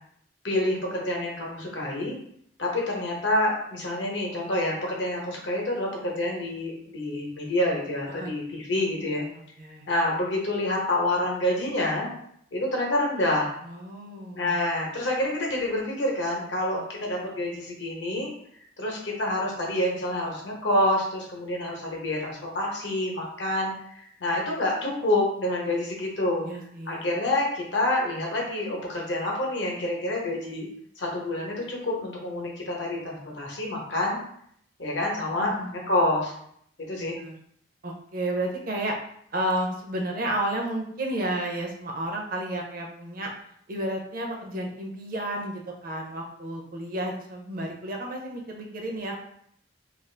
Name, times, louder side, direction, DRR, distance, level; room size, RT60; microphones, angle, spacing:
voice 1, 0.4-2.2 2.6-9.2 9.9-12.1 12.5-13.5 14.3-18.3 18.8-26.5 26.9-30.7 31.0-34.2 34.8-36.3 36.9-37.2, left 1 dB, 75° left, -1 dB, 0.8 m, -27 dB
voice 2, 13.6-14.5 26.4-27.1 35.4-35.7 37.2-37.3 37.8-39.0 39.3-43.3 43.7-49.2, right 1 dB, 45° right, 1 dB, 0.5 m, -31 dB
2.5 x 2.3 x 3.2 m, 0.68 s
head